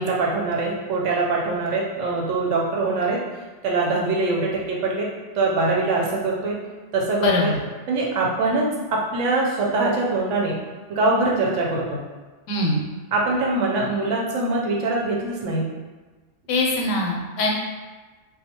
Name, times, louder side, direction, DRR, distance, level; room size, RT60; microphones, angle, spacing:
voice 1, 0.0-3.2 3.6-5.1 5.4-6.6 6.9-7.5 7.9-10.6 10.9-12.0 13.1-15.7, right 3 dB, 85° right, -2 dB, 0.9 m, -23 dB
voice 2, 7.2-7.6 12.5-12.9 16.5-17.5, left 2 dB, 90° left, -1 dB, 0.9 m, -22 dB
2.3 x 2.2 x 2.8 m, 1.3 s
omnidirectional pair, 1.2 m